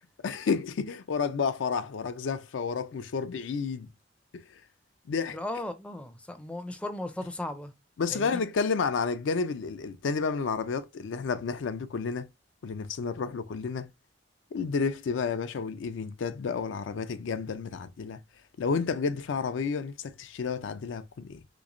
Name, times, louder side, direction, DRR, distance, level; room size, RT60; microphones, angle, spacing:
voice 1, 0.2-3.9 4.3-4.4 5.1-5.4 8.0-12.3 12.6-13.9 14.5-18.2 18.6-21.4, left 5 dB, 75° left, 0.4 m, -31 dB
voice 2, 5.3-7.7 8.1-8.4, left 1 dB, 5° left, 0.4 m, -36 dB
3.5 x 3.0 x 2.4 m
head